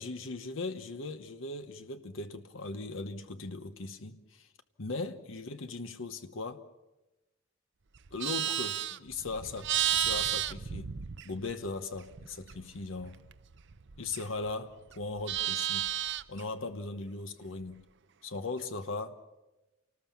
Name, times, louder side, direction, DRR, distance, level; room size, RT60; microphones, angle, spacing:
voice 1, 0.0-4.5 4.8-6.6 8.1-10.9 11.2-13.2 14.0-15.9 16.3-17.8 18.2-19.2, left 3 dB, 75° left, 1.1 m, -38 dB
Livestock farm animals working animals, 7.9-11.7 12.0-14.5 14.8-16.4, right 12 dB, 60° right, 0.7 m, -33 dB
28.5 x 19.5 x 7.3 m
head